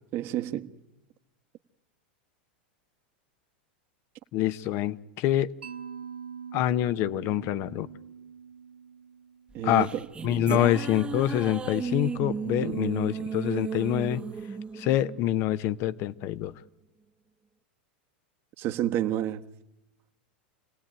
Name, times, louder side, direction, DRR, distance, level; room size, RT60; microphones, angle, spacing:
voice 1, 0.1-0.7 9.5-10.0 10.5-10.6 12.6-12.9 18.6-19.4, right 12 dB, 45° right, 1.2 m, -30 dB
voice 2, 4.3-5.5 6.5-7.9 9.6-9.9 10.2-14.2 14.7-16.5, left 13 dB, 50° left, 0.9 m, -26 dB
Mallet percussion, 5.6-9.6, right 7 dB, 85° right, 1.2 m, -43 dB
sound 1, 9.5-16.1, right 5 dB, 20° right, 1.0 m, -35 dB
27.5 x 18.0 x 9.0 m
hypercardioid pair, 100°, 6 cm